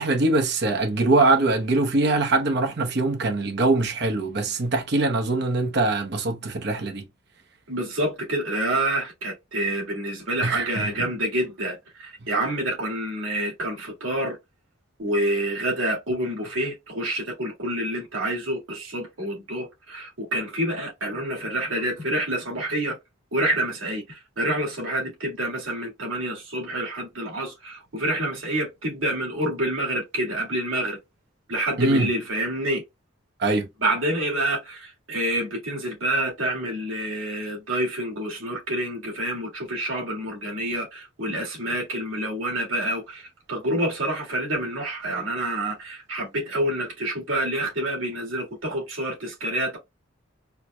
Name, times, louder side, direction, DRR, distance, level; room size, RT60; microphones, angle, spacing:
voice 1, 0.0-7.0 10.4-11.1 31.8-32.1 33.4-33.7, right 2 dB, 55° right, 0.8 m, -23 dB
voice 2, 7.7-14.4 15.0-23.0 23.3-31.0 31.5-32.8 33.8-49.8, right 1 dB, 80° right, 2.0 m, -27 dB
4.5 x 2.1 x 2.2 m
head